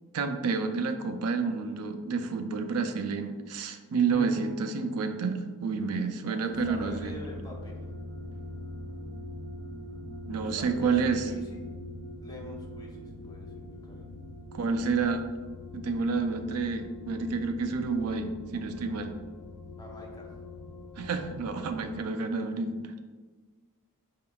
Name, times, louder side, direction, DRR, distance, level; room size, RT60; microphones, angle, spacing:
voice 1, 0.1-7.1 10.2-11.3 14.5-15.3 15.7-19.1 21.0-22.9, right 4 dB, 75° right, 7 dB, 0.4 m, -29 dB
Bass guitar, 4.1-7.1, left 2 dB, ahead, 1.5 m, -46 dB
voice 2, 6.3-7.7 10.3-11.7 12.2-14.1 19.8-20.4, equal, 15° left, -2 dB, 0.7 m, -46 dB
sound 1, 6.5-22.0, left 1 dB, 75° left, 0.5 m, -43 dB
4.4 x 3.6 x 2.2 m, 1.4 s
head